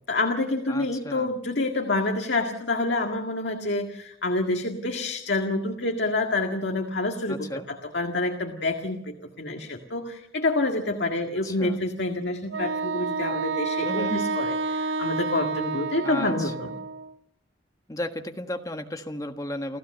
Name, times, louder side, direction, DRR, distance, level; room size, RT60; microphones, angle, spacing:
voice 1, 0.1-16.7, left 2 dB, 65° left, 3 dB, 1.8 m, -28 dB
voice 2, 0.7-1.3 7.3-7.7 11.4-11.8 13.8-14.2 16.0-16.5 17.9-19.8, left 1 dB, 20° left, 5 dB, 1.5 m, -34 dB
Wind instrument woodwind instrument, 12.5-17.1, right 3 dB, 75° right, 0.8 m, -29 dB
29.0 x 15.0 x 6.7 m, 0.80 s
head